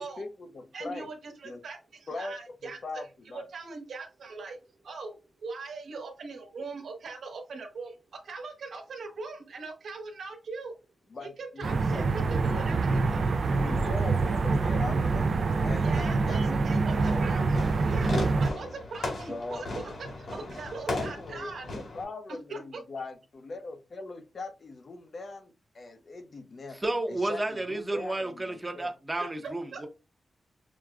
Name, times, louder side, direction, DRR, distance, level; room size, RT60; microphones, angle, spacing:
voice 1, 0.0-1.1 1.4-1.6 2.1-2.3 2.6-3.0 3.3-3.4 11.1-12.6 13.5-15.3 15.6-17.9 19.3-19.6 20.9-26.8 27.1-28.9, left 3 dB, 45° left, 0.6 m, -40 dB
voice 2, 0.7-4.6 4.8-10.8 11.2-13.7 15.8-21.7 22.3-22.8 29.4-29.9, right 4 dB, 80° right, 1.2 m, -41 dB
sound 1, 11.6-18.5, right 3 dB, 55° right, 0.4 m, -26 dB
Fireworks, 16.9-22.0, left 2 dB, 70° left, 2.1 m, -36 dB
voice 3, 26.7-29.9, right 2 dB, 20° right, 0.8 m, -31 dB
6.1 x 2.2 x 2.3 m
wide cardioid pair, 125°, 0 cm